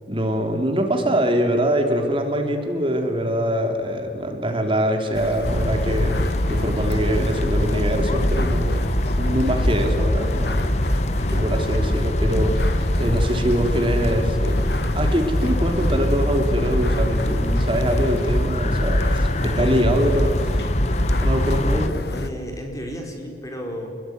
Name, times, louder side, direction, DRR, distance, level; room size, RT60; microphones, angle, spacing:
voice 1, 0.1-8.8 9.2-10.7 11.3-12.7 13.0-14.6 15.0-20.4 21.2-22.0, equal, 30° right, 4 dB, 3.4 m, -23 dB
sound 1, 5.1-22.3, left 1 dB, 65° left, 1.8 m, -28 dB
sound 2, 5.4-21.9, left 1 dB, 40° left, 1.4 m, -23 dB
voice 2, 19.4-19.8 22.1-23.9, equal, 20° left, 2 dB, 4.8 m, -33 dB
27.0 x 22.0 x 9.7 m, 2.3 s
head